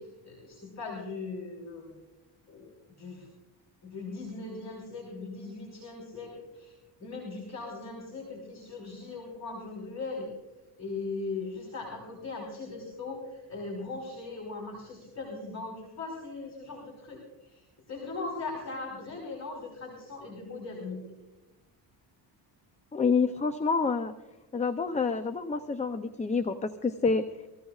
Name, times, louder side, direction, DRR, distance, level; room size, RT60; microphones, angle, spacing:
voice 1, 0.0-2.0 2.5-2.7 3.0-3.3 3.8-6.7 7.0-10.3 10.8-21.0, left 3 dB, 40° left, -2 dB, 4.7 m, -39 dB
voice 2, 22.9-24.1 24.5-27.5, left 4 dB, 15° left, 8 dB, 0.5 m, -28 dB
24.5 x 16.0 x 2.4 m, 1.1 s
cardioid pair, 110°, 44 cm